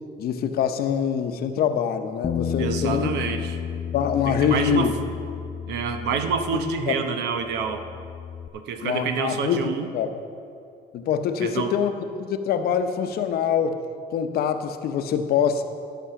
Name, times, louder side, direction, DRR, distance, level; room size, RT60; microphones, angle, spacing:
voice 1, 0.2-3.1 3.9-4.9 6.5-6.6 6.9-7.0 8.8-10.1 10.9-11.9 12.2-13.8 14.1-15.6, left 8 dB, 65° left, 8 dB, 0.8 m, -24 dB
Bass guitar, 2.2-7.0 7.3-8.5, left 8 dB, 25° left, 0.4 m, -32 dB
voice 2, 2.6-3.6 4.3-5.1 5.7-7.9 8.5-9.9 11.4-11.7, right 6 dB, 80° right, 7 dB, 0.9 m, -27 dB
13.0 x 6.1 x 5.8 m, 2.4 s
cardioid pair, 110°, 17 cm